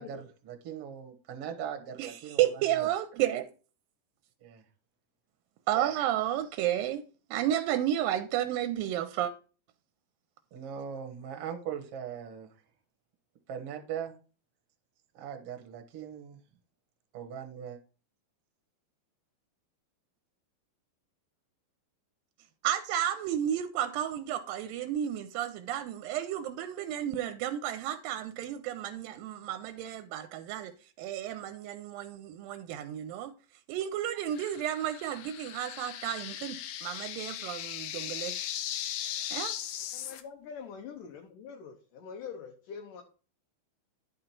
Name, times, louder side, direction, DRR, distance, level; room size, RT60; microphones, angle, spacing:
voice 1, 0.0-2.5 2.8-2.9 4.4-4.6 10.5-12.5 13.5-14.1 15.1-16.4 17.1-17.8, right 8 dB, 60° right, 1.7 m, -40 dB
voice 2, 2.0-3.5 5.7-7.0 7.3-9.3 22.6-30.7 31.0-33.3 33.7-38.3 39.3-39.5, right 11 dB, 80° right, 2.2 m, -32 dB
sound 1, 34.3-40.2, left 11 dB, 85° left, 2.7 m, -38 dB
voice 3, 39.9-43.0, left 6 dB, 70° left, 2.3 m, -44 dB
10.5 x 5.0 x 4.4 m
omnidirectional pair, 4.2 m